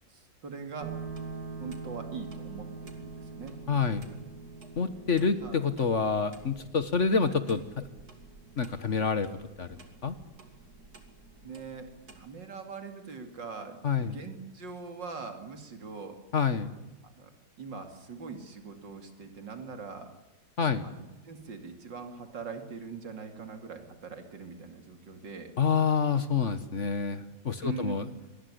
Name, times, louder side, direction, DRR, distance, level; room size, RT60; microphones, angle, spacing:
voice 1, 0.1-0.9 1.6-3.5 5.4-5.6 7.2-7.4 11.4-11.9 12.2-16.2 17.2-17.3 17.6-20.1 20.8-25.5 27.6-28.0, right 5 dB, 80° right, 6 dB, 3.3 m, -42 dB
sound 1, 0.8-12.3, right 4 dB, 55° right, 3.1 m, -45 dB
voice 2, 3.7-4.0 4.8-7.9 8.6-9.3 9.6-10.1 13.8-14.1 16.3-16.7 20.6-20.9 25.6-28.1, left 5 dB, 45° left, 12 dB, 1.5 m, -27 dB
25.0 x 20.0 x 9.9 m, 1.0 s
omnidirectional pair, 1.9 m